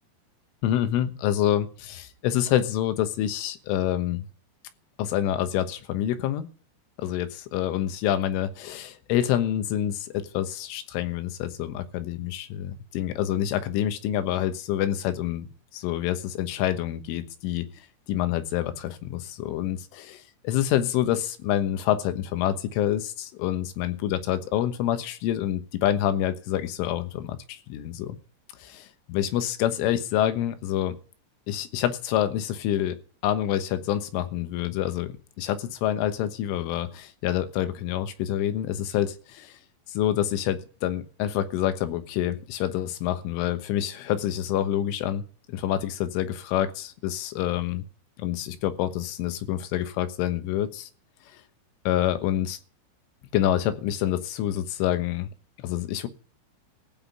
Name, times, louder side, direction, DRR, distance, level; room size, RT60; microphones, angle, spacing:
voice 1, 0.6-4.3 5.0-6.5 7.0-15.5 15.7-17.7 18.1-28.2 28.6-31.0 31.5-33.0 33.2-39.6 39.9-45.2 45.5-47.8 48.2-50.9 51.3-51.4 51.9-52.6 53.3-55.3 55.6-56.1, left 11 dB, 80° left, 3.7 m, -27 dB
15.5 x 5.9 x 9.3 m
omnidirectional pair, 5.7 m